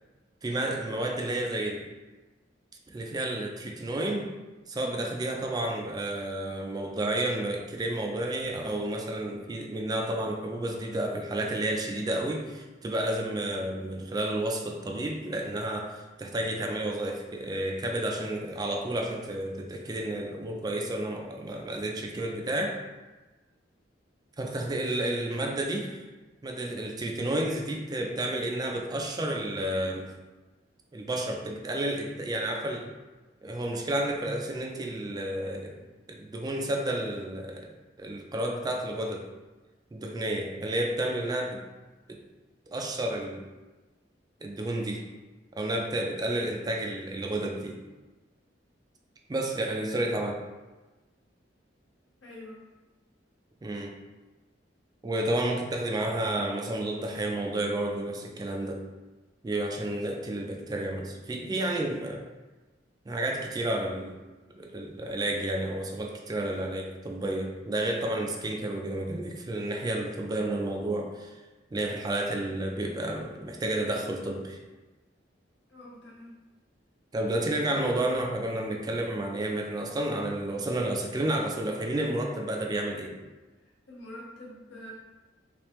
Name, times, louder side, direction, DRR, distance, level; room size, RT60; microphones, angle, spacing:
voice 1, 0.4-1.8 2.9-4.3 4.7-22.8 24.4-26.1 26.4-30.1 30.9-32.9 33.4-37.7 38.0-39.3 39.9-41.6 42.1-42.2 42.7-43.4 44.4-45.0 45.6-47.8 49.3-50.4 53.6-53.9 55.0-58.8 59.4-62.2 63.1-64.2 64.5-71.4 71.7-74.6 77.1-83.2, right 1 dB, 20° right, 1 dB, 0.3 m, -31 dB
voice 2, 52.2-52.6 75.7-76.4 83.9-84.9, left 1 dB, 70° left, -6 dB, 1.2 m, -45 dB
3.3 x 3.2 x 3.0 m, 1.2 s
head